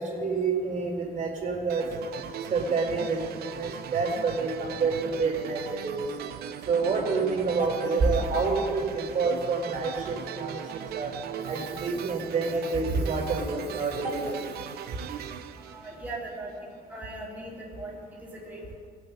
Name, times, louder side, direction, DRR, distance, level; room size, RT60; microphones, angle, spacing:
voice 1, 0.0-1.9 2.5-6.0 6.7-10.6 10.9-11.1 11.5-14.4, right 4 dB, 55° right, -3 dB, 4.0 m, -28 dB
sound 1, 1.7-16.5, right 9 dB, 85° right, 0.6 m, -39 dB
voice 2, 15.5-16.5 16.9-18.7, right 2 dB, 10° right, -6 dB, 2.7 m, -39 dB
20.5 x 7.6 x 5.6 m, 2.1 s
cardioid pair, 130°, 16 cm